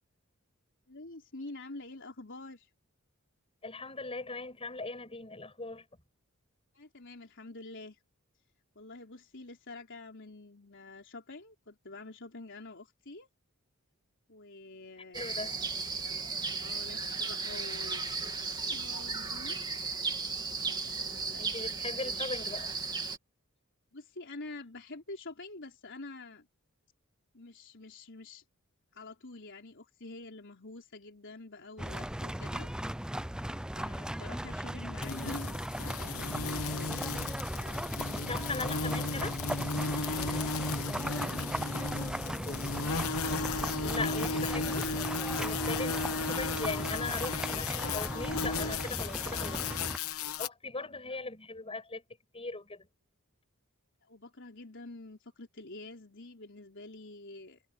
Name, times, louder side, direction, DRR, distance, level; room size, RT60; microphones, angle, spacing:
voice 1, 0.9-2.7 6.7-8.0 8.7-13.3 14.3-15.6 15.9-16.2 16.6-18.1 18.7-19.6 20.8-21.6 21.9-22.1 23.9-26.5 27.3-28.4 28.9-32.7 33.8-37.2 37.5-38.2 40.6-41.6 41.9-42.5 50.8-50.9 54.0-57.6, left 2 dB, 60° left, 4.3 m, -47 dB
voice 2, 3.6-5.8 15.1-15.5 21.4-22.7 38.1-39.4 42.5-42.6 43.8-45.0 45.4-49.8 50.4-52.0 52.3-52.9, left 3 dB, 25° left, 7.2 m, -39 dB
sound 1, 15.1-23.2, right 4 dB, 20° right, 3.2 m, -35 dB
sound 2, 31.8-50.0, equal, 5° right, 0.6 m, -37 dB
sound 3, 35.0-50.5, left 4 dB, 75° left, 1.2 m, -35 dB
head